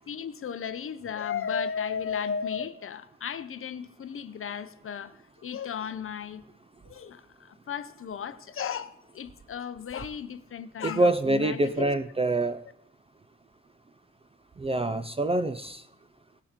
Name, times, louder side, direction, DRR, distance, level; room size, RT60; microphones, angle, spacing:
voice 1, 0.1-6.4 6.8-12.0, left 7 dB, 45° left, 0.7 m, -35 dB
voice 2, 10.8-12.6 14.6-15.8, right 2 dB, 20° right, 0.4 m, -25 dB
18.0 x 6.9 x 3.7 m
wide cardioid pair, 155°, 30 cm